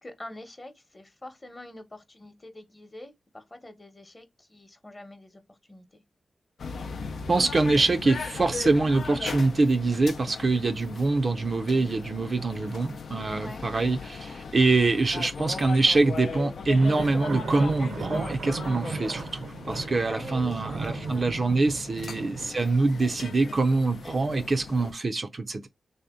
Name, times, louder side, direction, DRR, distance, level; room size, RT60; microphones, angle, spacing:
voice 1, 0.0-6.0 13.3-13.7 20.1-21.6 22.0-22.2, left 1 dB, 25° left, 0.9 m, -45 dB
sound 1, 6.6-24.9, left 5 dB, 75° left, 0.5 m, -38 dB
voice 2, 7.3-25.7, right 3 dB, 45° right, 0.4 m, -24 dB
sound 2, 16.7-22.5, right 4 dB, 80° right, 0.7 m, -36 dB
3.4 x 2.7 x 3.5 m
wide cardioid pair, 95°, 0 cm